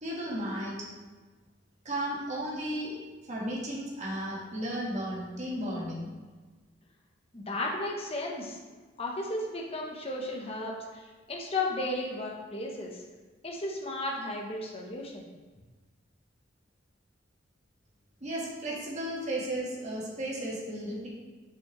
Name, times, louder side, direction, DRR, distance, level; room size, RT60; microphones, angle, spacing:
voice 1, 0.0-0.7 1.8-2.9 3.3-6.1 18.2-21.1, right 1 dB, 40° right, -4 dB, 1.5 m, -34 dB
voice 2, 7.3-8.6 9.0-13.0 13.4-15.3, left 2 dB, 30° left, -1 dB, 1.0 m, -34 dB
5.9 x 5.9 x 3.2 m, 1.3 s
head